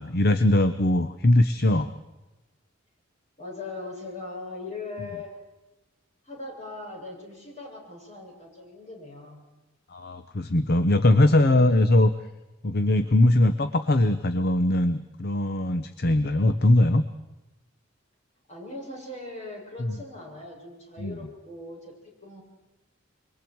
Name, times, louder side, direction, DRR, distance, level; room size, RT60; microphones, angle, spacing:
voice 1, 0.0-1.9 9.9-12.1 12.6-17.0 19.8-20.0 21.0-21.2, left 1 dB, 50° left, 11 dB, 0.9 m, -21 dB
voice 2, 3.4-5.4 6.2-9.4 18.5-22.4, left 2 dB, 35° left, -2 dB, 7.2 m, -40 dB
27.0 x 23.5 x 4.7 m, 1.0 s
head